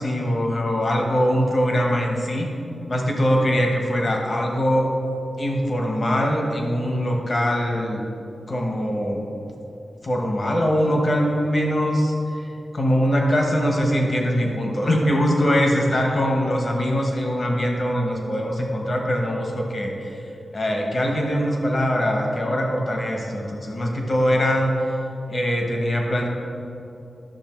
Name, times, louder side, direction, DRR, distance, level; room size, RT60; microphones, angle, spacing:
voice 1, 0.0-2.5 2.9-4.9 5.4-8.0 8.5-9.2 10.0-20.2 20.5-24.7 25.3-26.3, equal, 35° left, 0 dB, 1.3 m, -22 dB
11.5 x 6.7 x 4.6 m, 2.8 s
wide cardioid pair, 180°, 0 cm